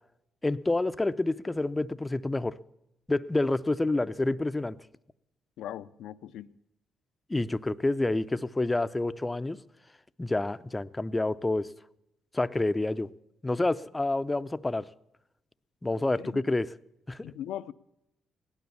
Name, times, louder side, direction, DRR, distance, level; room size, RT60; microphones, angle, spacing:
voice 1, 0.4-2.6 3.1-4.8 7.3-9.6 10.2-11.7 12.3-13.1 13.4-14.9 15.8-16.7 17.1-17.3, left 2 dB, 15° left, 0.5 m, -28 dB
voice 2, 5.6-6.6 16.2-16.4 17.2-17.7, left 11 dB, 85° left, 0.5 m, -39 dB
17.0 x 12.0 x 6.9 m
cardioid pair, 90°, 0 cm